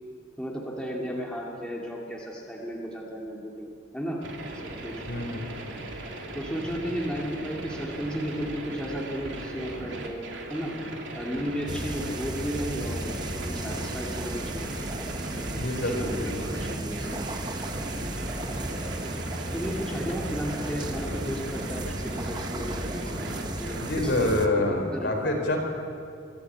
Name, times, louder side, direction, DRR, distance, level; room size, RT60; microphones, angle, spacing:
voice 1, 0.4-4.2 4.6-4.9 6.3-10.7 11.1-14.9 15.4-17.1 17.9-18.2 19.5-25.4, equal, 5° left, -3 dB, 2.1 m, -34 dB
sound 1, 4.2-23.9, right 1 dB, 70° right, 2.9 m, -38 dB
voice 2, 5.1-5.5 15.5-16.3 23.8-25.6, left 2 dB, 65° left, 2 dB, 3.9 m, -27 dB
sound 2, 11.7-24.5, right 1 dB, 20° right, 1.0 m, -34 dB
24.5 x 13.0 x 8.5 m, 2.5 s
head